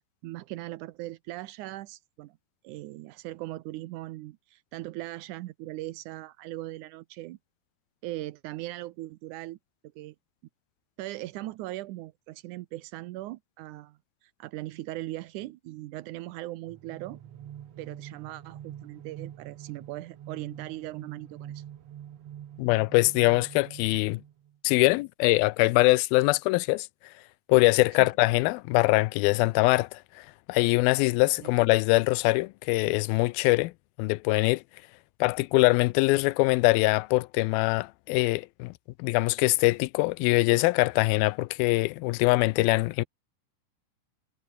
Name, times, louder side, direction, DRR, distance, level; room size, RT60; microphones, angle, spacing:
voice 1, 0.0-2.4 2.6-7.4 8.0-9.6 10.0-10.2 11.0-17.2 17.8-21.6 28.0-28.1 31.4-31.5, right 17 dB, 75° right, 1.9 m, -39 dB
sound 1, 16.7-24.6, right 10 dB, 60° right, 2.0 m, -45 dB
voice 2, 22.6-24.2 24.6-26.9 27.5-33.7 34.0-34.6 35.2-38.7 39.0-43.0, left 21 dB, 85° left, 2.4 m, -23 dB
omnidirectional pair, 4.3 m